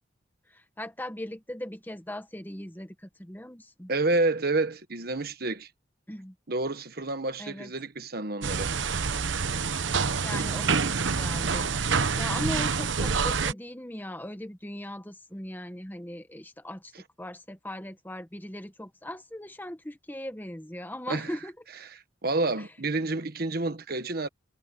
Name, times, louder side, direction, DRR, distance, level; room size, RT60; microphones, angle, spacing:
voice 1, 0.5-3.9 6.1-6.3 7.4-7.7 10.2-11.7 12.1-16.9 17.2-21.5 22.6-22.7, left 1 dB, 10° left, 1.2 m, -39 dB
voice 2, 3.9-5.7 6.5-8.7 21.1-21.3 22.2-24.3, right 2 dB, 55° right, 1.3 m, -29 dB
sound 1, 8.4-13.5, right 5 dB, 75° right, 1.0 m, -27 dB
head